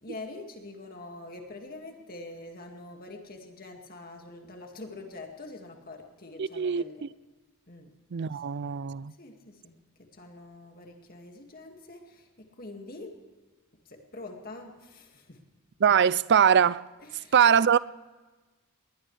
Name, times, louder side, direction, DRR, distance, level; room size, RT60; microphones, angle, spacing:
voice 1, 0.0-7.0 7.7-7.9 9.2-9.7 10.1-13.1 13.9-15.4 17.0-17.5, left 2 dB, 40° left, 2.1 m, -45 dB
voice 2, 6.4-7.1 8.1-9.1 15.8-16.9 17.3-17.8, right 7 dB, 50° right, 0.4 m, -22 dB
20.5 x 20.0 x 3.3 m
head